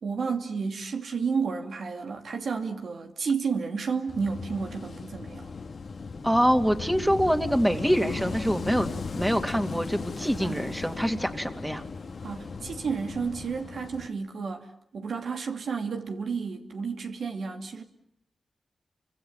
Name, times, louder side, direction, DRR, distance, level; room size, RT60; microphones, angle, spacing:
voice 1, 0.0-5.5 10.4-10.7 12.2-14.7 14.9-17.8, right 5 dB, 80° right, 2.6 m, -31 dB
Wind / Waves surf, 4.1-14.1, left 4 dB, 65° left, 1.8 m, -37 dB
voice 2, 6.2-8.9 9.2-11.8, equal, 5° right, 2.6 m, -25 dB
30.0 x 25.0 x 7.2 m
cardioid pair, 65°, 0 cm